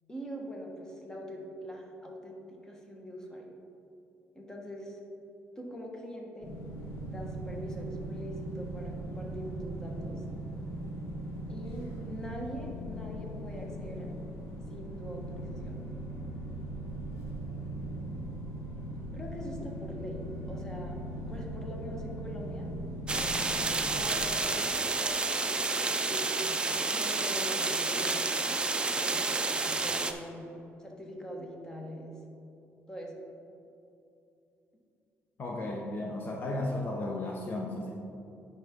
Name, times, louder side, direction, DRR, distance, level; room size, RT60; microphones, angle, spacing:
voice 1, 0.1-3.5 4.3-5.0 5.6-6.5 7.0-10.2 11.5-14.1 14.7-15.8 19.1-21.0 21.3-22.7 23.8-26.6 26.9-28.2 28.9-32.1 32.9-33.2, equal, 10° left, -1 dB, 1.3 m, -43 dB
sound 1, 6.4-24.4, right 1 dB, 70° left, 1.4 m, -39 dB
sound 2, 23.1-30.1, right 3 dB, 20° right, 0.5 m, -30 dB
voice 2, 35.4-37.9, left 2 dB, 45° left, -1 dB, 0.8 m, -34 dB
9.6 x 5.7 x 3.7 m, 2.8 s
cardioid pair, 115°, 5 cm